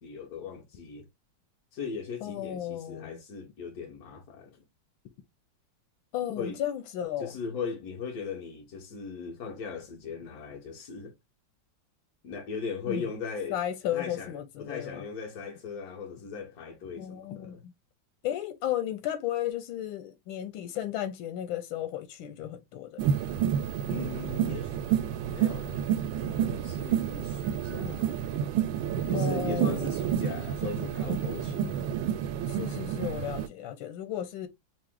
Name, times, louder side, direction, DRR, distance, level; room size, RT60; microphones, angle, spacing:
voice 1, 0.0-1.1 1.7-4.6 6.4-6.6 7.2-11.1 12.2-13.6 13.9-17.6 23.9-28.2 29.1-31.8, left 5 dB, 55° left, 1.5 m, -39 dB
voice 2, 2.2-3.2 6.1-7.4 12.9-13.1 13.5-15.0 17.0-17.7 18.2-23.0 27.8-28.0 29.1-30.0 32.5-34.5, left 11 dB, 90° left, 1.5 m, -34 dB
sound 1, 23.0-33.5, right 9 dB, 80° right, 1.3 m, -29 dB
4.7 x 2.1 x 3.7 m
omnidirectional pair, 2.1 m